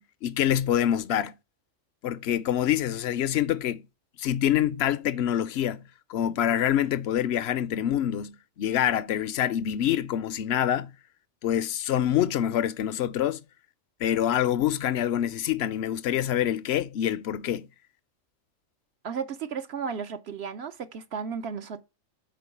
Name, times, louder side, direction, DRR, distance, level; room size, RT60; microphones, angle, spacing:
voice 1, 0.0-1.3 2.0-3.8 4.2-5.8 6.1-10.9 11.4-13.4 14.0-17.7, left 11 dB, 65° left, 0.7 m, -26 dB
voice 2, 19.0-21.8, right 6 dB, 60° right, 0.9 m, -34 dB
7.7 x 4.6 x 5.6 m
omnidirectional pair, 1.3 m